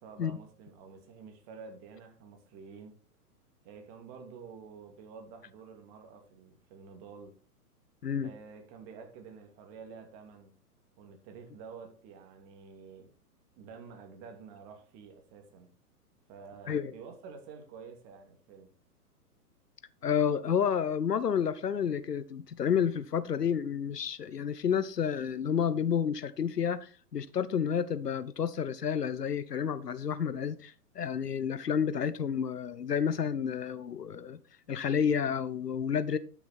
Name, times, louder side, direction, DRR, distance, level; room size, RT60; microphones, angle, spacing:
voice 1, 0.0-3.0 3.6-7.4 8.2-10.5 11.0-13.1 13.6-15.7 16.3-18.7, right 5 dB, 35° right, 2.5 m, -49 dB
voice 2, 20.0-34.4 34.7-36.2, left 7 dB, 80° left, 0.9 m, -30 dB
11.5 x 6.3 x 4.3 m
figure-of-eight pair, 115°, 47 cm